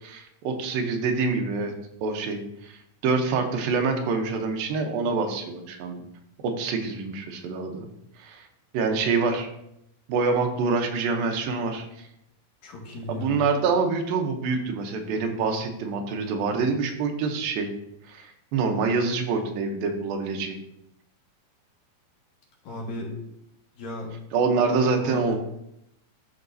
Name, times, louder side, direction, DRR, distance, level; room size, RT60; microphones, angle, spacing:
voice 1, 0.0-1.7 2.0-2.8 3.0-6.0 6.4-7.9 8.2-8.5 8.7-9.5 10.1-12.1 13.1-17.7 18.1-20.6 24.3-25.4, right 4 dB, 80° right, 4 dB, 2.6 m, -26 dB
voice 2, 12.6-13.5 22.6-23.1 23.7-24.1 25.0-25.4, left 1 dB, 70° left, -3 dB, 3.3 m, -35 dB
13.0 x 4.8 x 2.6 m, 0.78 s
omnidirectional pair, 4.1 m